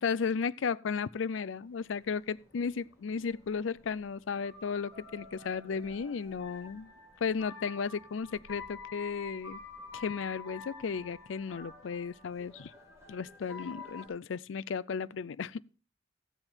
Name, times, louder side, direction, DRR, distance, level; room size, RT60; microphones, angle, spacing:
voice 1, 0.0-6.9 7.2-9.6 9.9-12.7 13.1-15.6, left 6 dB, 90° left, 0.5 m, -34 dB
sound 1, 1.6-14.1, left 4 dB, 15° right, 4.9 m, -49 dB
15.0 x 7.7 x 4.4 m
head